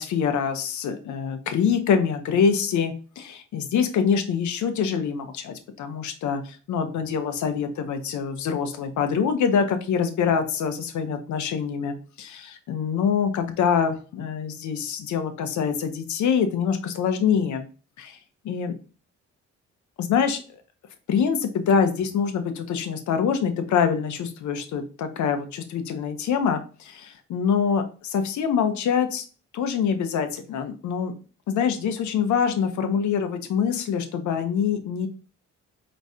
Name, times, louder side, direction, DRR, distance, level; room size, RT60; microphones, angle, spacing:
voice 1, 0.0-17.7 18.0-18.2 18.4-18.7 20.0-20.4 21.1-29.2 29.5-31.1 31.5-35.1, left 7 dB, 70° left, 8 dB, 0.8 m, -25 dB
4.7 x 3.1 x 2.7 m, 0.36 s
cardioid pair, 90°, 30 cm